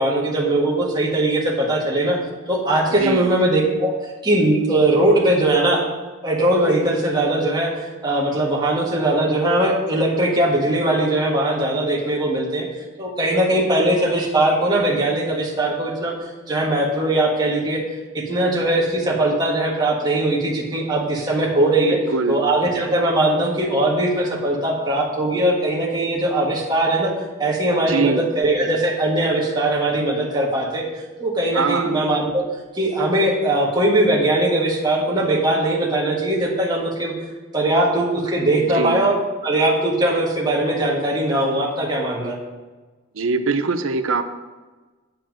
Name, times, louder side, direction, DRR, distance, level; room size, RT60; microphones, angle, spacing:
voice 1, 0.0-2.2 2.5-3.9 4.2-5.8 6.2-12.7 13.0-16.1 16.5-17.8 18.1-22.0 22.3-27.1 27.4-30.8 31.2-32.5 32.7-37.1 37.5-39.1 39.4-42.4, right 1 dB, 20° right, -4 dB, 1.6 m, -20 dB
voice 2, 2.9-3.3 21.9-22.4 27.8-28.3 31.5-31.9 38.6-39.0 43.1-44.2, right 4 dB, 75° right, 9 dB, 0.7 m, -22 dB
9.1 x 4.5 x 7.6 m, 1.3 s
head